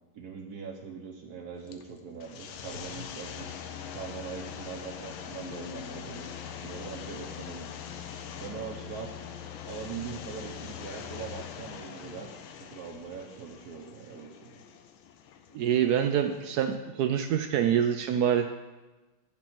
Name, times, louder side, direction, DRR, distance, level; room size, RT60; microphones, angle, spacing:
voice 1, 0.1-3.5 3.9-7.7 8.4-9.1 9.6-12.3 12.6-14.5, right 6 dB, 60° right, 2 dB, 1.2 m, -41 dB
sound 1, 1.6-16.8, left 8 dB, 90° left, 1.5 m, -42 dB
voice 2, 15.5-18.5, right 9 dB, 80° right, 6 dB, 0.8 m, -26 dB
10.5 x 4.3 x 6.0 m, 1.1 s
omnidirectional pair, 2.2 m